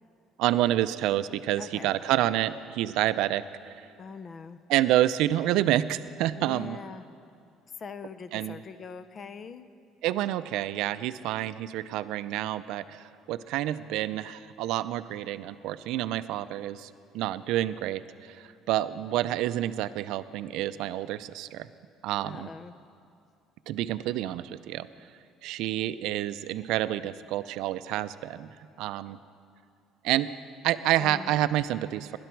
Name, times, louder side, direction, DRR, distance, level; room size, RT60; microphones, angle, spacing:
voice 1, 0.4-3.9 4.7-6.8 8.3-8.6 10.0-21.7 22.0-22.5 23.7-24.9 25.4-28.5 28.8-29.2 30.0-30.3 30.6-32.2, right 13 dB, 75° right, 14 dB, 0.4 m, -28 dB
voice 2, 1.6-1.9 4.0-4.6 6.4-7.1 7.8-9.7 22.2-22.7 31.0-31.3, left 5 dB, 35° left, 13 dB, 0.6 m, -42 dB
17.5 x 11.5 x 4.6 m, 2.5 s
cardioid pair, 130°, 0 cm